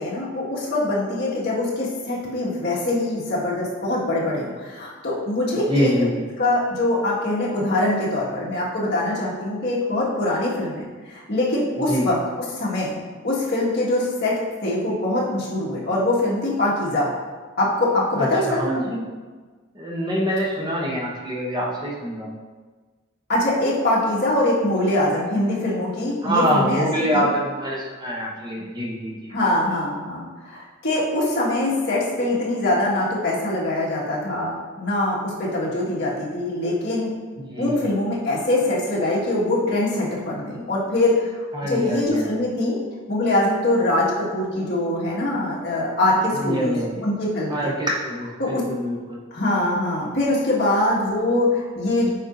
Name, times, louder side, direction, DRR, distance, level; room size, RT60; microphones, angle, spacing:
voice 1, 0.0-5.9 6.4-12.9 13.2-17.1 17.6-18.8 23.3-26.9 27.1-27.3 29.3-42.8 43.1-46.7 47.0-47.7 48.4-48.6 49.3-52.1, left 1 dB, 55° left, -6 dB, 1.8 m, -23 dB
voice 2, 5.7-6.3 11.9-12.1 18.2-19.1 19.8-22.3 26.2-29.3 37.5-37.8 41.5-42.3 46.3-47.0 47.5-49.2, equal, 20° right, -3 dB, 0.8 m, -25 dB
8.7 x 5.1 x 2.6 m, 1.4 s
head